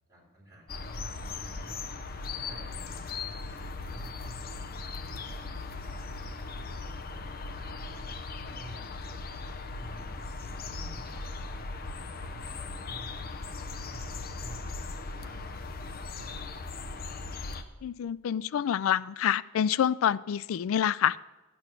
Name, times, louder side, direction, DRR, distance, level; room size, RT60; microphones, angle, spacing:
voice 1, 0.1-1.7 2.3-8.0 8.4-11.7 12.1-16.8, right 1 dB, 20° right, -5 dB, 3.6 m, -52 dB
sound 1, 0.7-17.6, left 3 dB, 45° left, 0.7 m, -38 dB
voice 2, 17.8-21.2, left 9 dB, 85° left, 20 dB, 0.3 m, -27 dB
12.0 x 8.7 x 5.9 m, 1.1 s
head